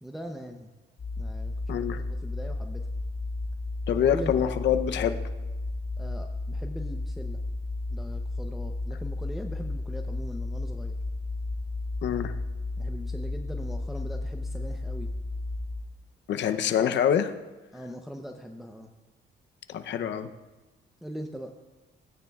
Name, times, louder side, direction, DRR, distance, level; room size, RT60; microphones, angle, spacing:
voice 1, 0.0-0.7 1.2-2.8 3.9-4.5 6.0-7.4 7.9-11.0 12.8-15.1 17.7-18.9 21.0-21.5, equal, ahead, 3 dB, 0.7 m, -40 dB
sound 1, 1.0-15.8, left 2 dB, 40° left, 1.7 m, -33 dB
voice 2, 1.7-2.0 3.9-5.2 12.0-12.3 16.3-17.3 19.7-20.3, left 9 dB, 65° left, 9 dB, 0.7 m, -25 dB
16.5 x 9.3 x 2.4 m, 1.1 s
cardioid pair, 90°, 20 cm